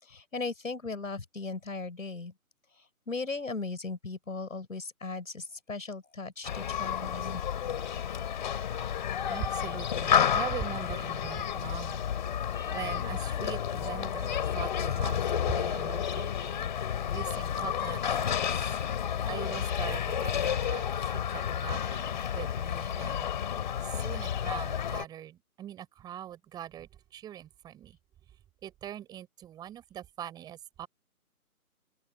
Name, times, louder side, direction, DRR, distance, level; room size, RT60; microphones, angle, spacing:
voice 1, 0.0-2.3 3.1-7.4, left 3 dB, 60° left, 6.1 m, -37 dB
Human group actions, 6.4-25.1, left 9 dB, 30° left, 3.6 m, -31 dB
voice 2, 9.3-12.0 12.7-16.7 17.1-18.7 19.3-28.0 28.6-30.9, right 11 dB, 10° right, 6.3 m, -42 dB
open air
figure-of-eight pair, 150°, 44 cm